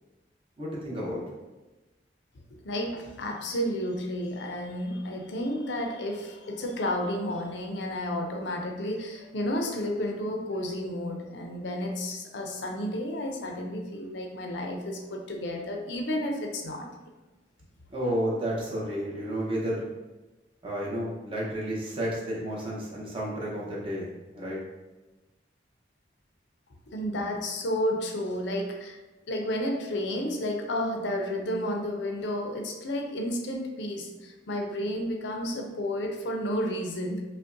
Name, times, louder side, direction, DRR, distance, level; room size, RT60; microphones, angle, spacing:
voice 1, 0.6-1.2 17.9-19.9 20.6-24.6, equal, 30° right, -5 dB, 0.8 m, -31 dB
voice 2, 2.6-16.9 26.9-29.0 29.3-37.2, left 1 dB, 70° left, 2 dB, 0.5 m, -31 dB
5.1 x 2.1 x 2.6 m, 1.1 s
head